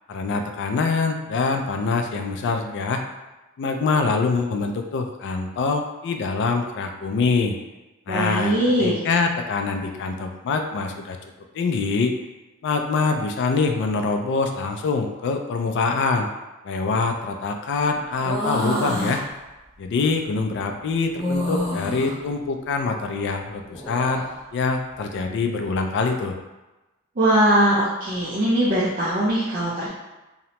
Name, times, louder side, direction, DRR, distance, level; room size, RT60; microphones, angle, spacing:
voice 1, 0.1-3.0 3.6-7.6 8.1-8.5 8.8-11.2 11.5-12.1 12.6-16.3 16.6-19.2 19.8-24.2 24.5-26.4, left 4 dB, 60° left, 5 dB, 0.3 m, -24 dB
voice 2, 8.1-9.0 27.2-29.9, right 1 dB, 45° right, -9 dB, 0.5 m, -21 dB
sound 1, 18.2-19.2 21.2-22.1 23.6-24.3, equal, 5° left, 0.6 m, -27 dB
2.8 x 2.1 x 2.8 m, 1.1 s
head